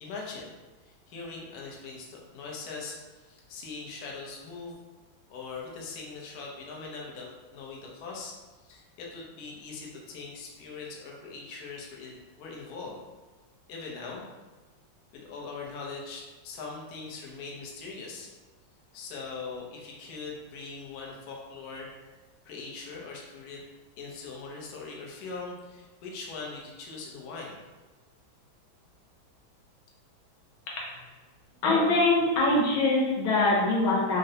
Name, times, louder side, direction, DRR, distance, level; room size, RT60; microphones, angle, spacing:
voice 1, 0.0-0.6 0.8-4.8 5.3-8.4 8.6-13.0 13.7-14.3 15.1-18.3 18.9-21.9 22.4-23.6 24.0-27.6, left 4 dB, 65° left, -2 dB, 0.9 m, -41 dB
voice 2, 31.6-34.2, left 2 dB, 90° left, -3 dB, 1.6 m, -23 dB
3.7 x 2.1 x 2.7 m, 1.2 s
omnidirectional pair, 2.2 m